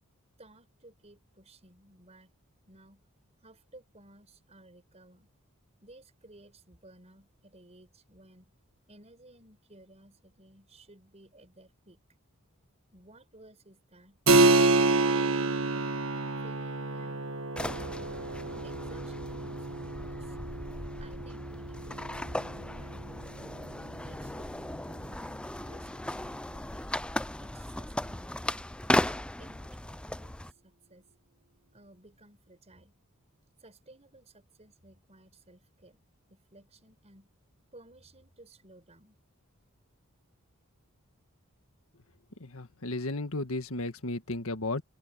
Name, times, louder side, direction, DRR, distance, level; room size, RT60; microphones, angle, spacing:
voice 1, 0.4-2.3 2.7-3.1 3.4-5.3 5.8-8.5 8.9-12.0 12.9-15.9 16.4-17.4 17.7-18.2 18.6-20.4 21.0-23.6 24.0-26.9 27.4-28.3 28.9-31.1 31.7-32.9 33.6-36.0 36.3-37.3 37.7-39.2, right 1 dB, 30° right, 5.7 m, -56 dB
Keyboard (musical), 14.3-24.5, right 3 dB, 65° right, 1.6 m, -29 dB
sound 1, 17.6-30.5, left 1 dB, 5° left, 0.4 m, -36 dB
voice 2, 42.4-44.8, left 2 dB, 75° left, 1.7 m, -34 dB
head